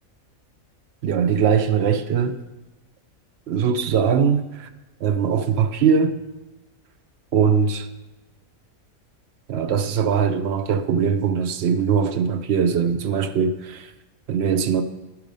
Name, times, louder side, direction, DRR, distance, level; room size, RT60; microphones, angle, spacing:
voice 1, 1.0-2.4 3.5-4.7 5.0-6.2 7.3-7.9 9.5-13.9 14.3-14.8, right 6 dB, 65° right, 0.7 m, -21 dB
12.0 x 4.8 x 5.2 m
omnidirectional pair, 1.5 m